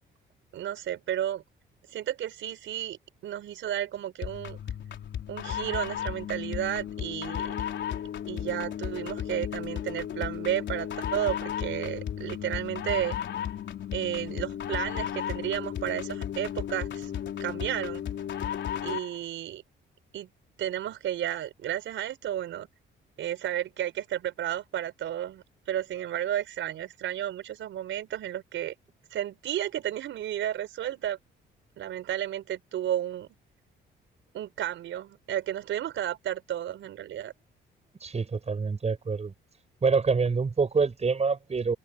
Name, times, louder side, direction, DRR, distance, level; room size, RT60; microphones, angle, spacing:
voice 1, 0.5-1.4 1.9-4.6 5.3-7.5 8.3-13.1 13.9-17.1 17.4-18.0 18.8-19.6 20.1-20.3 20.6-22.7 23.2-28.7 29.1-31.2 31.8-33.3 34.3-37.3, right 11 dB, 75° right, 5.4 m, -32 dB
sound 1, 4.2-19.2, left 9 dB, 65° left, 4.2 m, -34 dB
voice 2, 38.0-39.3 39.8-41.8, right 5 dB, 35° right, 6.6 m, -26 dB
cardioid pair, 90°, 20 cm